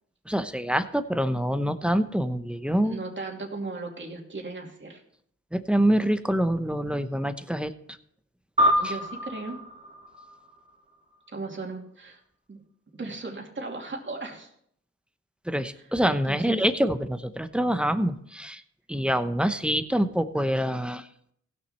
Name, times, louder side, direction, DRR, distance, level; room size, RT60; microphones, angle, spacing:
voice 1, 0.3-3.0 5.5-7.7 15.5-18.6 18.9-21.0, equal, 5° right, 10 dB, 0.9 m, -25 dB
voice 2, 2.8-5.0 8.8-9.6 11.3-12.2 12.5-12.6 12.9-14.5 15.5-16.7, right 3 dB, 35° right, 1 dB, 2.7 m, -37 dB
sound 1, 8.6-11.3, equal, 20° right, 2.7 m, -27 dB
16.5 x 6.6 x 4.3 m, 0.67 s
cardioid pair, 60°, 31 cm